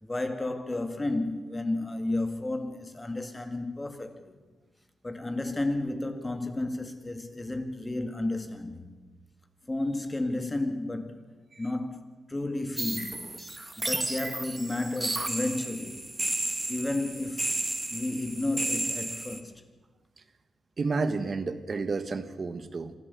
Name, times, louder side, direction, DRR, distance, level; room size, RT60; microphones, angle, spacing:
voice 1, 0.0-4.4 5.0-8.9 9.6-11.2 11.6-13.2 13.8-16.0 16.7-17.5 17.9-19.6, left 2 dB, 20° left, 2.1 m, -32 dB
sound 1, 12.8-19.4, right 2 dB, 15° right, 1.8 m, -33 dB
voice 2, 20.8-22.9, right 4 dB, 45° right, 1.5 m, -30 dB
25.5 x 13.5 x 8.5 m
cardioid pair, 95°, 0 cm